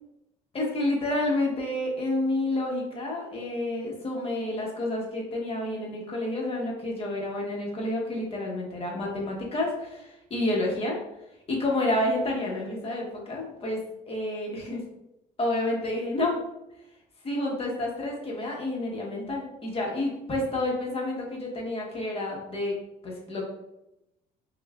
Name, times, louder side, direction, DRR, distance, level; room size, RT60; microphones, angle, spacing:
voice 1, 0.5-11.0 11.5-13.8 14.0-14.8 15.4-16.4 17.2-22.7 23.0-23.4, left 1 dB, 35° left, -1 dB, 1.2 m, -29 dB
5.4 x 2.5 x 2.4 m, 0.89 s
cardioid pair, 110°, 17 cm